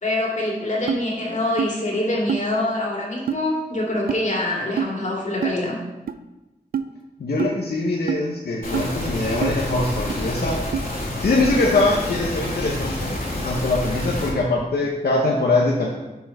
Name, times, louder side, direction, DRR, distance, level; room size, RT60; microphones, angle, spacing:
voice 1, 0.0-5.8, left 1 dB, 50° left, -3 dB, 2.3 m, -25 dB
sound 1, 0.9-1.0 1.6-1.7 2.3-2.4 3.3-3.4 4.1-4.2 4.8-4.9 5.4-5.6 6.1-6.2 6.7-6.9 7.4-7.5 8.1-8.2 8.7-8.9 9.4-9.6 10.1-10.2 10.7-10.8, right 7 dB, 70° right, 0.4 m, -25 dB
voice 2, 7.2-10.6 11.2-13.2 13.4-15.9, left 2 dB, 85° left, -2 dB, 0.8 m, -22 dB
sound 2, 8.6-14.3, left 1 dB, 70° left, 2.5 m, -28 dB
6.8 x 4.4 x 4.5 m, 1.0 s
cardioid pair, 50°, 16 cm